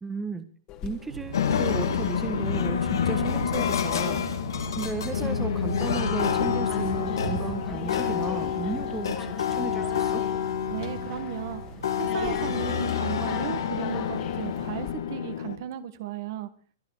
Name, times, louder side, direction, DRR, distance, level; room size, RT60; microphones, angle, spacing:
voice 1, 0.0-0.5 0.8-4.2 4.7-10.2, right 4 dB, 10° right, 9 dB, 1.5 m, -34 dB
sound 1, 0.7-14.9, left 9 dB, 35° left, 2.3 m, -44 dB
sound 2, 1.1-14.8, right 4 dB, 80° right, 5.8 m, -40 dB
sound 3, 1.3-15.6, left 7 dB, 80° left, 2.7 m, -28 dB
voice 2, 10.7-11.6 12.0-16.5, right 11 dB, 55° right, 10 dB, 1.9 m, -35 dB
22.5 x 10.5 x 5.1 m, 0.42 s
hypercardioid pair, 130°, 2 cm